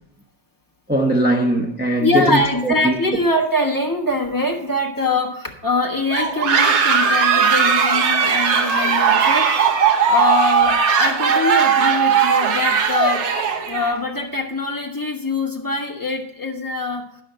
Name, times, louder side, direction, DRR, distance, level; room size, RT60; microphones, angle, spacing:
voice 1, 0.9-3.0, right 1 dB, 10° right, 0.4 m, -20 dB
voice 2, 2.0-13.2 13.7-17.0, left 2 dB, 15° left, 0.9 m, -23 dB
sound 1, 6.1-13.9, right 6 dB, 85° right, 1.7 m, -17 dB
12.0 x 5.6 x 6.3 m
omnidirectional pair, 1.9 m